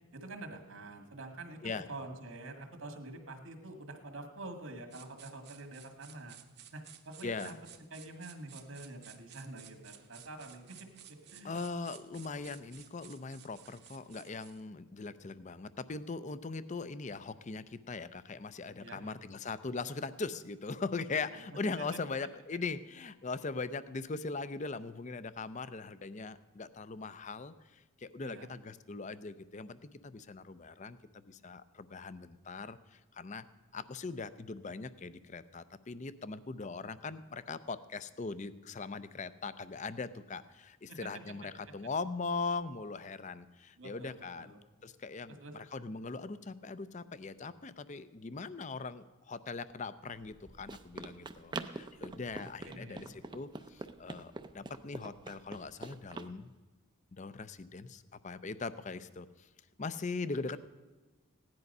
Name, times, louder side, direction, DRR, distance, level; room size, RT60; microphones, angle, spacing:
voice 1, 0.1-6.4 6.7-7.5 7.9-11.5 18.8-19.2 21.3-21.4 21.8-22.0 28.2-28.5 40.9-41.4 43.8-44.6 45.3-45.5 52.3-53.1, right 2 dB, 70° right, 5 dB, 1.9 m, -47 dB
sound 1, 4.9-14.6, right 10 dB, 50° right, 1.0 m, -56 dB
voice 2, 7.2-7.5 11.4-33.4 33.7-44.5 44.8-56.5 57.1-59.5 59.8-60.6, left 4 dB, 35° left, 14 dB, 0.5 m, -40 dB
Run, 50.1-56.3, right 3 dB, 20° right, 0.5 m, -45 dB
16.0 x 10.5 x 5.4 m, 1.2 s
head